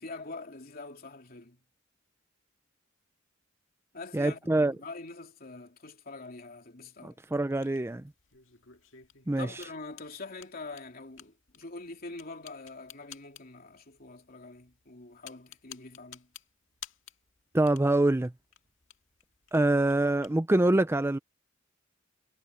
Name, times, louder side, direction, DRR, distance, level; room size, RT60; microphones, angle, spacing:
voice 1, 0.0-1.6 3.9-7.2 9.4-16.3, left 3 dB, 50° left, 3.1 m, -44 dB
voice 2, 4.1-4.7 7.0-8.0 9.3-9.5 17.5-18.3 19.5-21.2, right 2 dB, 10° right, 0.5 m, -25 dB
sound 1, 7.2-20.4, left 10 dB, 70° left, 2.1 m, -53 dB
head